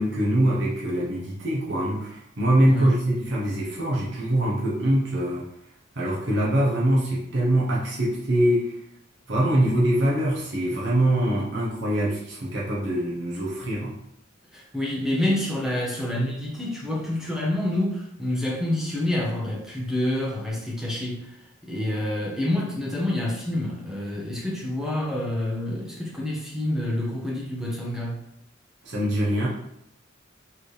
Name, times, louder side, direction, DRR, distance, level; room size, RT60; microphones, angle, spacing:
voice 1, 0.0-5.5 6.0-8.7 9.3-14.0 28.8-29.5, right 1 dB, 65° right, -6 dB, 0.9 m, -23 dB
voice 2, 2.6-2.9 14.5-21.3 21.6-28.2, left 1 dB, 5° right, -4 dB, 1.0 m, -27 dB
4.7 x 3.4 x 3.2 m, 0.78 s
head